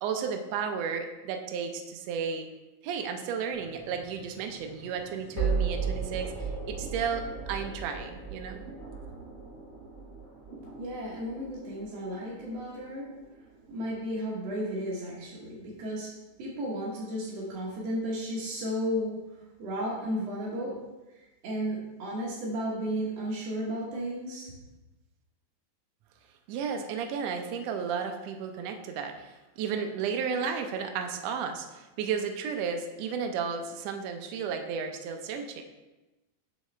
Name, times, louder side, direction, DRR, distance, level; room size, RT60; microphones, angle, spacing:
voice 1, 0.0-2.5 2.8-8.6 26.5-35.6, right 6 dB, 80° right, 5 dB, 1.5 m, -33 dB
sound 1, 3.5-14.6, right 5 dB, 60° left, 3.1 m, -37 dB
voice 2, 10.8-13.1 13.7-16.1 16.4-19.2 19.6-20.7 21.1-24.5, equal, 60° right, -6 dB, 2.0 m, -33 dB
6.6 x 6.3 x 3.2 m, 1.1 s
omnidirectional pair, 3.6 m